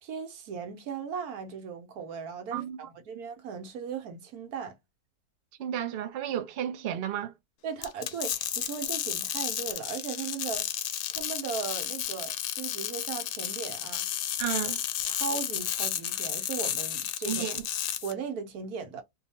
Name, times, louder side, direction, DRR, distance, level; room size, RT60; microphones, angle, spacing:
voice 1, 0.0-4.8 7.6-10.7 11.1-14.1 15.0-17.4 18.0-19.0, right 6 dB, 80° right, 1.3 m, -37 dB
voice 2, 5.6-7.3 14.4-14.8 17.3-17.6, right 10 dB, 60° right, 0.6 m, -32 dB
sound 1, 7.8-18.1, left 11 dB, 75° left, 1.0 m, -32 dB
2.7 x 2.4 x 4.2 m
omnidirectional pair, 1.6 m